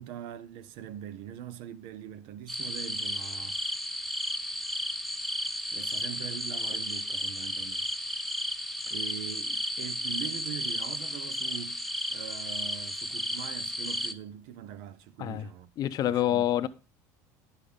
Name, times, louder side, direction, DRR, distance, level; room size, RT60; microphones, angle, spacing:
voice 1, 0.0-3.6 5.7-7.9 8.9-11.8 12.1-15.7 16.0-16.7, right 11 dB, 65° right, 0.8 m, -42 dB
sound 1, 2.5-14.1, equal, ahead, 0.7 m, -33 dB
voice 2, 15.8-16.7, left 12 dB, 45° left, 0.7 m, -27 dB
9.9 x 6.8 x 5.1 m
supercardioid pair, 110°, 9 cm